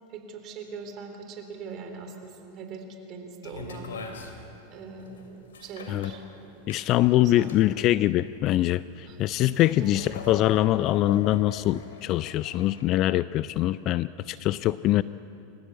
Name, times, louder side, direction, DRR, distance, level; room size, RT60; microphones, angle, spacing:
voice 1, 0.1-4.4 4.7-6.7 7.1-7.7 9.0-9.2 9.8-10.2, right 4 dB, 45° right, 5 dB, 3.6 m, -42 dB
sound 1, 3.4-12.8, left 4 dB, 80° left, 3.0 m, -42 dB
voice 2, 6.7-15.0, left 14 dB, 45° left, 16 dB, 0.4 m, -23 dB
27.5 x 14.5 x 8.2 m, 2.8 s
hypercardioid pair, 95°, 0 cm